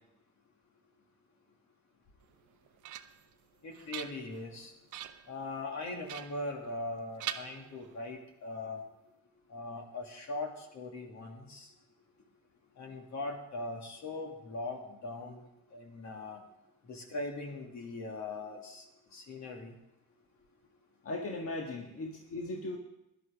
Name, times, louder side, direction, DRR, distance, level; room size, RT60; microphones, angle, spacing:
sound 1, 2.3-3.3 3.7-4.5 4.9-5.3 6.1-6.9 7.2-8.2, right 12 dB, 75° right, 0.7 m, -43 dB
voice 1, 3.6-4.7 5.3-8.8 9.5-11.7 12.8-16.4 16.9-18.8 19.1-19.7, left 2 dB, 65° left, 2 dB, 2.4 m, -40 dB
voice 2, 21.0-22.8, left 2 dB, 50° left, 0 dB, 1.7 m, -38 dB
17.0 x 11.0 x 3.6 m, 0.88 s
cardioid pair, 90°, 30 cm